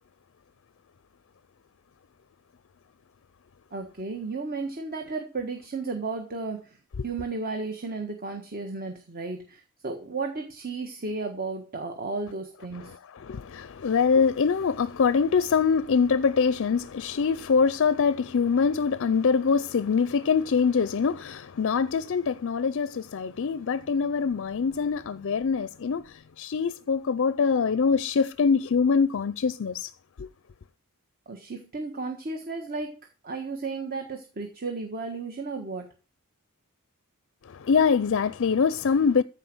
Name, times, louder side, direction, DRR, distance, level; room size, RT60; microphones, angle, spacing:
voice 1, 3.7-6.8 7.0-13.0 31.3-33.0 33.2-35.9, right 3 dB, 40° right, 1.5 m, -34 dB
voice 2, 12.7-29.9 30.2-30.3 37.4-39.2, left 5 dB, 60° left, 0.5 m, -24 dB
14.5 x 4.9 x 7.7 m
head